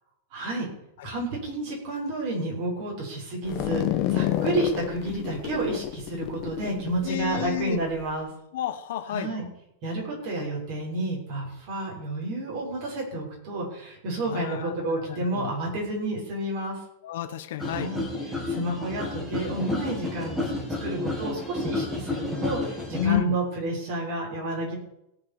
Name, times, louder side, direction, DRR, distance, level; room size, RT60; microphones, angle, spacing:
voice 1, 0.3-0.7 1.0-3.8 4.1-8.3 9.1-9.4 9.8-16.8 17.7-20.4 20.8-24.7, right 2 dB, 35° right, -3 dB, 6.8 m, -30 dB
sound 1, 3.4-8.1, left 13 dB, 35° left, 1.0 m, -30 dB
voice 2, 7.0-7.8 8.5-9.3 14.3-15.5 17.0-17.9 23.0-23.4, left 12 dB, 60° left, 8 dB, 1.1 m, -31 dB
sound 2, 17.6-23.1, left 2 dB, ahead, 2.2 m, -31 dB
17.5 x 6.6 x 7.2 m, 0.81 s
supercardioid pair, 170°, 0 cm